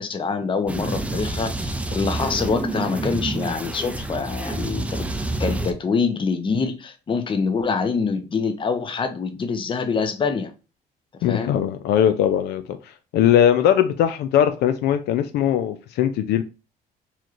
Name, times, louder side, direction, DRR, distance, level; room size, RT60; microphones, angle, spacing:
voice 1, 0.0-5.1 5.4-10.5 11.3-11.5, left 5 dB, 30° left, 0.7 m, -25 dB
sound 1, 0.7-5.7, right 2 dB, 10° right, 0.4 m, -28 dB
voice 2, 11.2-12.8 13.1-16.4, left 10 dB, 75° left, 0.4 m, -20 dB
4.2 x 3.1 x 2.4 m
cardioid pair, 110°, 17 cm